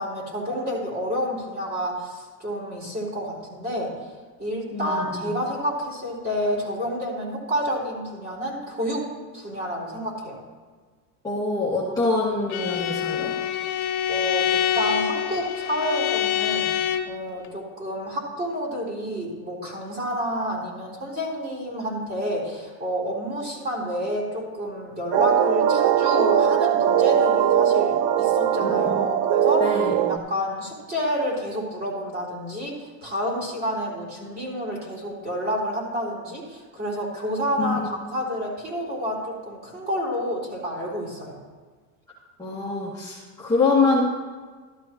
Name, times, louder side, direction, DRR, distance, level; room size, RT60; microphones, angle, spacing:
voice 1, 0.0-4.1 4.4-9.1 9.3-10.4 13.8-41.4, equal, 20° right, -4 dB, 4.1 m, -29 dB
voice 2, 4.7-5.3 11.2-13.3 28.6-29.1 29.6-30.2 37.6-37.9 42.4-44.0, left 3 dB, 10° left, -8 dB, 2.2 m, -25 dB
Bowed string instrument, 12.5-17.2, left 10 dB, 85° left, 1.1 m, -25 dB
sound 1, 25.1-30.2, right 9 dB, 60° right, 0.6 m, -20 dB
13.5 x 12.0 x 3.1 m, 1.4 s
supercardioid pair, 120°, 42 cm